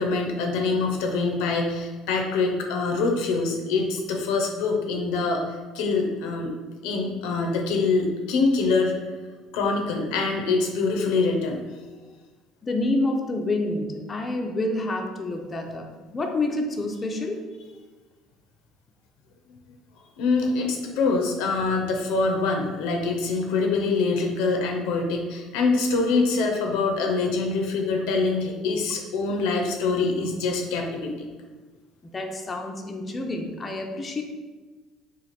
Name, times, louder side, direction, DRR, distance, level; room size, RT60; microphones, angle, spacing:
voice 1, 0.0-5.4 5.7-6.5 6.8-8.9 9.5-11.6 20.2-31.3, left 3 dB, 80° left, 2 dB, 0.6 m, -24 dB
voice 2, 12.6-17.4 32.1-34.2, left 2 dB, 25° left, 3 dB, 0.4 m, -28 dB
3.1 x 2.4 x 4.1 m, 1.3 s
supercardioid pair, 105°, 0 cm